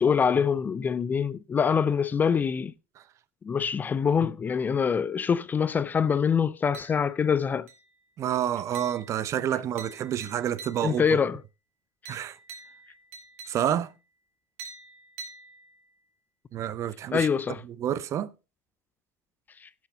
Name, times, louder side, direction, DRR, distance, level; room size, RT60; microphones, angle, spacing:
voice 1, 0.0-2.7 3.4-7.7 10.8-11.4 17.1-17.6 19.6-19.7, left 6 dB, 20° left, 0.4 m, -25 dB
sound 1, 6.7-7.3 7.7-8.1 8.7-11.2 12.0-14.0 14.6-16.0, right 4 dB, 65° right, 2.7 m, -47 dB
voice 2, 8.2-11.0 12.1-12.4 13.5-13.9 16.5-17.3 17.8-18.3, right 10 dB, 40° right, 0.7 m, -28 dB
16.5 x 6.2 x 2.8 m
hypercardioid pair, 85°, 8 cm